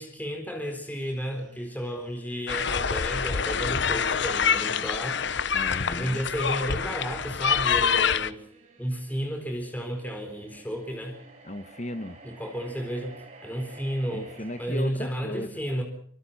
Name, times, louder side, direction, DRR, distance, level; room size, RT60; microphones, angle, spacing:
voice 1, 0.0-5.2 5.9-8.4 8.8-11.2 12.2-13.2 13.4-15.8, equal, 10° left, 4 dB, 4.2 m, -32 dB
sound 1, 0.6-14.7, right 3 dB, 35° right, 6.0 m, -53 dB
sound 2, 2.5-8.3, left 6 dB, 60° left, 0.8 m, -26 dB
voice 2, 5.5-6.2 11.4-12.2 14.1-15.6, left 1 dB, 35° left, 11 dB, 1.4 m, -36 dB
26.0 x 25.5 x 4.2 m, 0.63 s
head